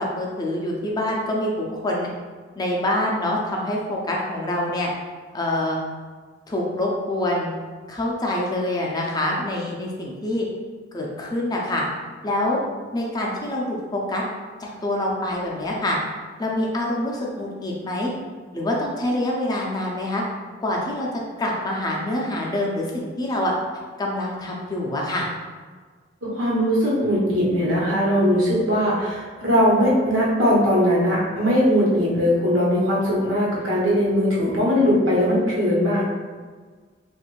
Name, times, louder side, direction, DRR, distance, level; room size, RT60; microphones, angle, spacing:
voice 1, 0.0-2.1 2.6-4.9 5.3-5.8 6.5-7.5 7.9-10.5 10.9-11.9 12.2-12.6 12.9-14.2 14.6-16.0 16.4-18.1 18.5-20.2 20.6-21.1 21.4-23.5 24.0-25.3, left 1 dB, 20° left, -2 dB, 0.5 m, -25 dB
voice 2, 26.2-36.0, equal, 85° right, -6 dB, 1.1 m, -20 dB
3.1 x 2.4 x 3.0 m, 1.5 s
head